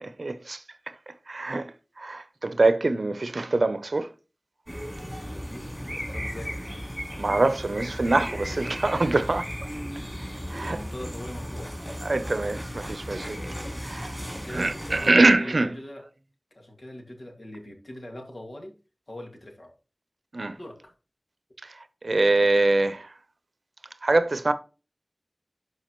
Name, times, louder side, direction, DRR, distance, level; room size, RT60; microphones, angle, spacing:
voice 1, 0.0-4.1 7.2-9.7 10.5-10.8 12.0-13.4 13.8-14.2 14.5-15.7 20.3-20.6 21.6-21.7 22.0-23.1 24.0-24.5, right 2 dB, 85° right, 0.6 m, -24 dB
sound 1, 4.7-15.1, equal, ahead, 3.9 m, -35 dB
voice 2, 5.3-6.6 10.6-11.7 14.2-16.0 16.5-18.7 19.1-19.7 20.6-20.9, left 1 dB, 70° left, 2.2 m, -41 dB
11.5 x 4.8 x 3.1 m
wide cardioid pair, 50°, 0 cm